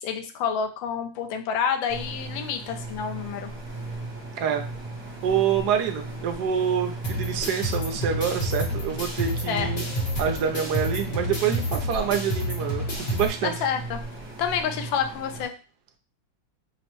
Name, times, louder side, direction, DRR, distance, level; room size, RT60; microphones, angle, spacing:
voice 1, 0.0-3.5 9.5-9.7 13.4-14.0 14.4-15.5, left 7 dB, 80° left, 6 dB, 1.3 m, -28 dB
sound 1, 1.9-15.4, right 2 dB, 15° right, 0.4 m, -37 dB
sound 2, 3.1-14.3, left 3 dB, 55° left, 1.4 m, -47 dB
voice 2, 5.2-9.8 10.2-13.5, right 8 dB, 70° right, 3 dB, 1.0 m, -26 dB
sound 3, 7.0-13.3, equal, 40° left, 1.1 m, -30 dB
5.4 x 2.1 x 3.0 m, 0.35 s
omnidirectional pair, 2.1 m